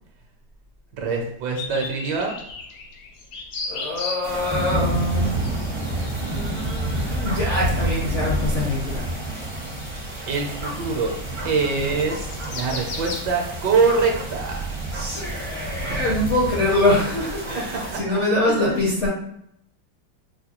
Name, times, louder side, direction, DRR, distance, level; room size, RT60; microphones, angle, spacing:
voice 1, 1.0-2.3 10.3-11.2 11.4-14.6 15.9-16.1 17.5-18.0 18.5-19.1, right 4 dB, 70° right, 1 dB, 1.1 m, -24 dB
sound 1, 1.5-4.5 4.8-13.3, left 3 dB, 75° left, 1.4 m, -37 dB
voice 2, 3.7-5.4 6.1-9.0 14.9-19.1, left 1 dB, 60° left, -4 dB, 0.7 m, -24 dB
sound 2, 4.2-18.0, right 1 dB, 35° right, 0.4 m, -29 dB
4.6 x 2.2 x 2.8 m, 0.71 s
omnidirectional pair, 2.1 m